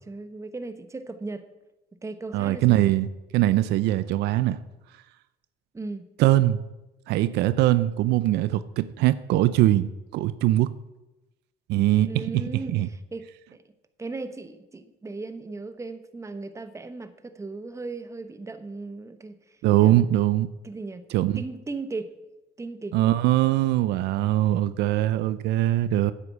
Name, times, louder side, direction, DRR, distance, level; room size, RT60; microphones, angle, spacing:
voice 1, 0.1-1.5 2.0-2.9 5.7-6.1 12.0-13.2 13.5-13.6 14.0-19.4 19.8-20.0 20.6-21.0 21.3-22.1 22.6-23.0, right 3 dB, 15° right, 10 dB, 1.1 m, -37 dB
voice 2, 2.3-3.1 3.3-4.6 6.2-6.6 7.1-10.7 11.7-12.9 19.6-20.5 21.1-21.4 22.9-26.1, right 14 dB, 85° right, 15 dB, 0.6 m, -22 dB
9.9 x 8.3 x 8.4 m, 1.0 s
cardioid pair, 110°, 17 cm